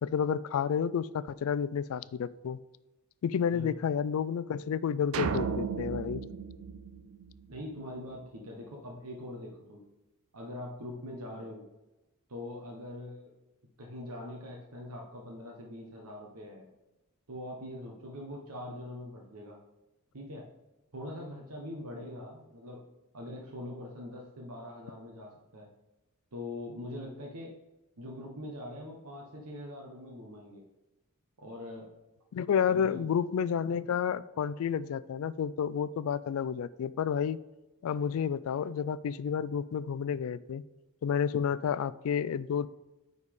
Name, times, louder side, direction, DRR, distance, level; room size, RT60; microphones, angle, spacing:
voice 1, 0.0-2.6 3.2-6.2 32.3-37.4 37.8-40.6 41.0-42.7, left 7 dB, 70° left, 17 dB, 0.3 m, -30 dB
sound 1, 5.1-7.7, right 6 dB, 65° right, 0.4 m, -35 dB
voice 2, 7.5-9.8 10.3-11.7 12.3-13.3 13.8-16.7 17.3-19.6 20.1-20.5 20.9-22.8 23.1-25.7 26.3-27.5 28.0-30.7 31.4-31.9 32.7-33.0, left 1 dB, 90° right, -1 dB, 1.1 m, -43 dB
9.5 x 4.1 x 3.6 m, 1.0 s
head